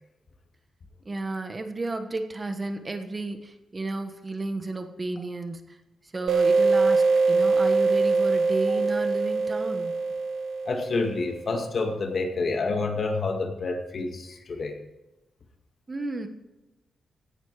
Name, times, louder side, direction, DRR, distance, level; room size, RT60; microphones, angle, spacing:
voice 1, 1.0-5.8 6.0-9.9 15.9-16.3, right 2 dB, 25° right, 7 dB, 1.3 m, -33 dB
sound 1, 6.3-11.6, right 4 dB, 75° right, 1.0 m, -23 dB
voice 2, 10.7-14.8, left 3 dB, 45° left, 4 dB, 2.1 m, -28 dB
17.0 x 11.5 x 4.9 m, 1.0 s
wide cardioid pair, 130°, 0 cm